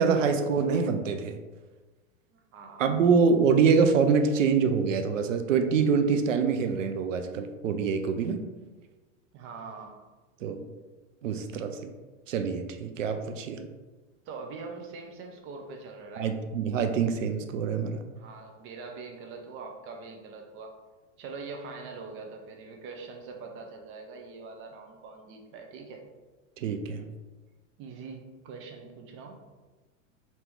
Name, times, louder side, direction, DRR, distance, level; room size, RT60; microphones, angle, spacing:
voice 1, 0.0-1.4 2.8-8.4 10.4-10.7 11.2-11.9 12.3-13.7 16.2-18.0 26.6-27.0, right 5 dB, 90° right, 7 dB, 0.5 m, -25 dB
voice 2, 2.3-2.9 9.3-10.0 14.3-16.3 18.2-20.8 21.2-26.0 27.8-29.5, right 4 dB, 35° right, 3 dB, 0.6 m, -43 dB
3.0 x 2.8 x 3.5 m, 1.2 s
hypercardioid pair, 110°, 38 cm